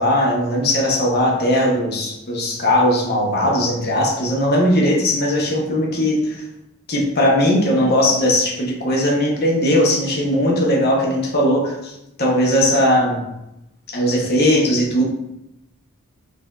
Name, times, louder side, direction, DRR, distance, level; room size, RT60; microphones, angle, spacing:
voice 1, 0.0-6.4 6.9-13.2 13.9-15.0, left 1 dB, 45° left, -2 dB, 0.8 m, -18 dB
4.8 x 2.4 x 2.3 m, 0.86 s
head